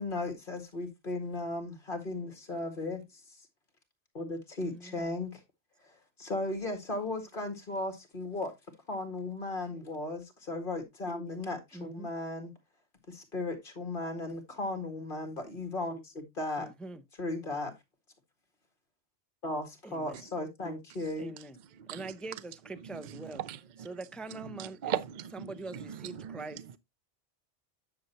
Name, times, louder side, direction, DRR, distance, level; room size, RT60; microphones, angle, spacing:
voice 1, 0.0-3.0 4.1-5.4 5.8-8.5 8.9-12.5 13.1-16.7 17.2-17.7 19.4-21.3, left 2 dB, 50° left, 2.2 m, -36 dB
voice 2, 4.6-5.2 11.7-12.1 16.6-17.0 19.8-20.2 21.2-21.6 21.9-23.4 23.8-25.0 25.3-26.6, right 2 dB, ahead, 0.4 m, -43 dB
voice 3, 23.1-23.6 24.5-26.4, right 9 dB, 50° right, 0.7 m, -38 dB
10.5 x 6.7 x 2.9 m
omnidirectional pair, 1.2 m